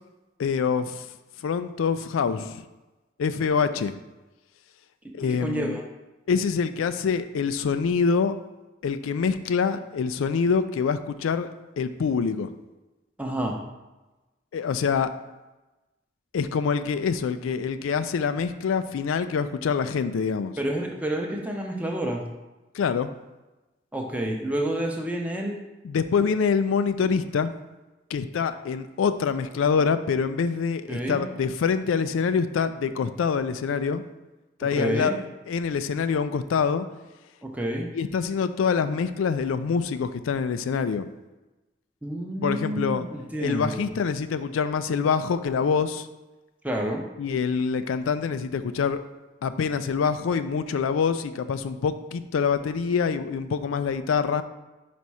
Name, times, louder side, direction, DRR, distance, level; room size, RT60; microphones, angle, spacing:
voice 1, 0.4-1.0 1.4-2.6 3.2-3.9 5.1-5.8 6.3-8.3 8.8-11.5 11.8-12.5 14.5-15.1 16.3-20.5 22.7-23.1 25.8-27.5 28.1-34.0 34.6-36.9 37.9-41.1 42.4-43.0 43.4-46.1 47.2-49.0 49.4-54.4, left 6 dB, 85° left, 11 dB, 0.4 m, -25 dB
voice 2, 5.3-5.8 13.2-13.6 20.6-22.2 23.9-25.6 30.9-31.2 34.7-35.2 37.4-37.9 42.0-43.9 46.6-47.0, right 1 dB, 10° right, 1 dB, 0.6 m, -29 dB
5.2 x 4.2 x 4.7 m, 1.1 s
head